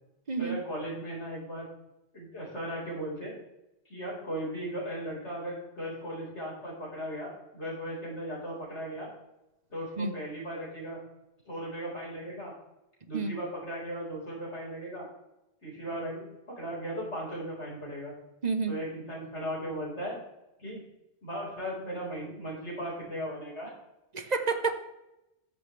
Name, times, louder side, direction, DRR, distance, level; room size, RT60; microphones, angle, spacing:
voice 1, 0.4-1.7 2.1-3.3 3.8-9.1 9.7-11.0 11.5-12.5 13.1-15.1 15.6-16.3 16.6-18.1 18.7-20.2 20.6-20.8 21.2-23.7, equal, 85° left, -4 dB, 5.0 m, -37 dB
voice 2, 18.4-18.8 24.1-24.7, right 4 dB, 40° right, 8 dB, 1.0 m, -29 dB
14.0 x 7.5 x 3.3 m, 0.92 s
omnidirectional pair, 1.1 m